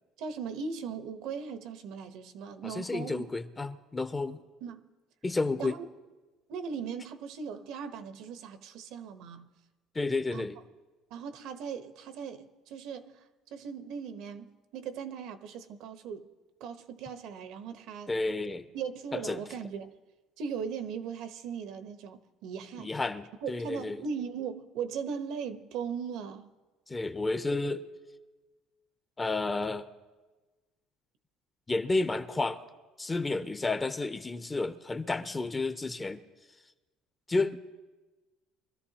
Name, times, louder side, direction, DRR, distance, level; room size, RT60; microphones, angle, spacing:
voice 1, 0.2-3.3 4.6-4.9 5.6-5.8 6.5-9.5 10.3-10.5 11.1-13.2 13.5-16.3 16.6-18.1 18.7-19.9 20.4-22.9 23.4-26.5, right 6 dB, 70° right, 1.0 m, -38 dB
voice 2, 2.6-4.4 5.2-5.7 9.9-10.6 18.1-18.7 19.1-19.4 22.8-24.0 26.9-27.8 29.2-29.9 31.7-32.6 33.0-36.2 37.3-37.6, left 3 dB, 15° left, 0.6 m, -31 dB
24.5 x 13.0 x 2.9 m
cardioid pair, 140°, 0 cm